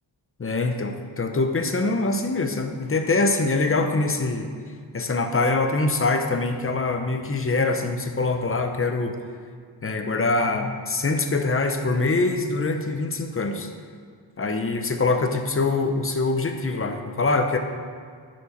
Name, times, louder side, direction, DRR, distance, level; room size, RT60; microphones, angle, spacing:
voice 1, 0.4-4.6 4.9-9.2 9.8-13.7 14.4-17.6, left 3 dB, 30° left, 5 dB, 0.7 m, -24 dB
11.0 x 4.8 x 5.2 m, 2.1 s
wide cardioid pair, 140°, 45 cm